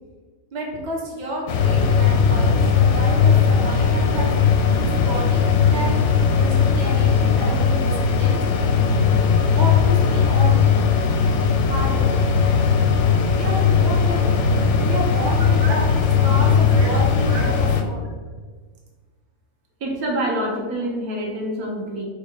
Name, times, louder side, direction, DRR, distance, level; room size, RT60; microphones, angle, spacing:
voice 1, 0.5-4.4 4.7-5.4 5.7-6.0 6.4-8.7 9.6-10.6 11.6-12.3 13.3-14.6 14.8-15.8 16.2-18.0, right 1 dB, 35° right, -2 dB, 0.8 m, -31 dB
sound 1, 1.5-17.8, left 6 dB, 65° left, 0.8 m, -18 dB
voice 2, 19.8-22.0, right 1 dB, 75° right, -1 dB, 1.3 m, -27 dB
4.7 x 2.4 x 4.3 m, 1.5 s
omnidirectional pair, 1.6 m